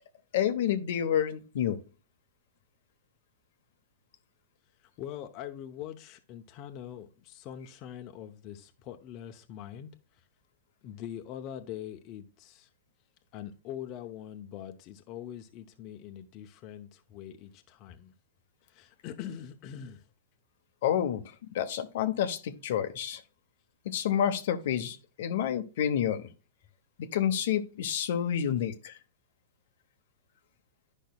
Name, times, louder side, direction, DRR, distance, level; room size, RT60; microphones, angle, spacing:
voice 1, 0.3-1.8 20.8-21.2 21.5-23.2 23.8-26.2 27.0-29.0, left 9 dB, 65° left, 0.9 m, -29 dB
voice 2, 5.0-9.9 10.8-12.7 13.3-18.1 18.7-20.0, left 10 dB, 35° left, 0.8 m, -43 dB
10.5 x 5.4 x 2.3 m
hypercardioid pair, 140°, 0 cm